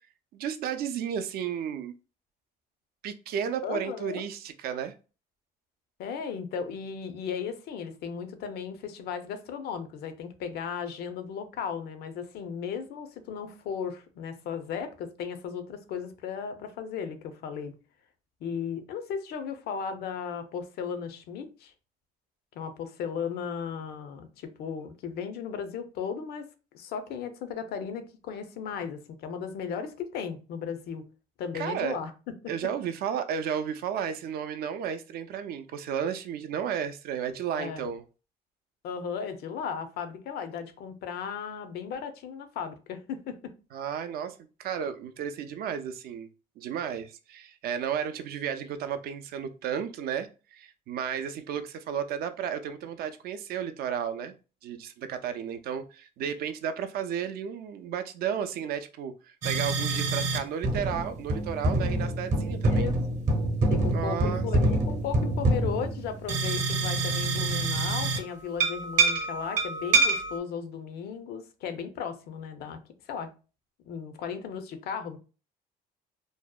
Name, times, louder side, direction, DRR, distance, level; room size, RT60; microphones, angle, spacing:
voice 1, 0.3-1.9 3.0-4.9 31.5-32.0 32.5-38.0 43.7-46.3 46.6-54.3 54.6-62.9 63.9-64.5, right 8 dB, 65° right, 0.4 m, -33 dB
voice 2, 3.6-4.2 6.0-17.7 18.4-21.7 22.6-26.5 26.7-31.0 31.4-32.5 37.6-37.9 38.8-43.5 62.7-62.9 63.7-72.8 73.1-73.3 73.9-75.2, left 7 dB, 70° left, 0.5 m, -36 dB
sound 1, 59.4-60.4 60.6-68.2 68.6-70.4, right 2 dB, 45° right, 0.8 m, -26 dB
2.6 x 2.1 x 2.2 m
cardioid pair, 110°, 17 cm